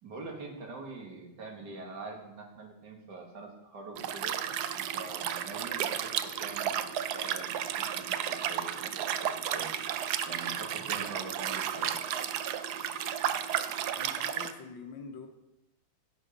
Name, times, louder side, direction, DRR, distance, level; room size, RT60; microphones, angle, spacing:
voice 1, 0.0-4.4 4.7-6.1 6.4-9.8 10.3-12.0, right 3 dB, 55° right, 1 dB, 2.3 m, -44 dB
Liquid, 4.0-14.5, right 9 dB, 70° right, 0.9 m, -33 dB
voice 2, 14.0-15.3, left 5 dB, 70° left, 5 dB, 1.9 m, -45 dB
11.0 x 8.4 x 5.2 m, 0.94 s
omnidirectional pair, 2.3 m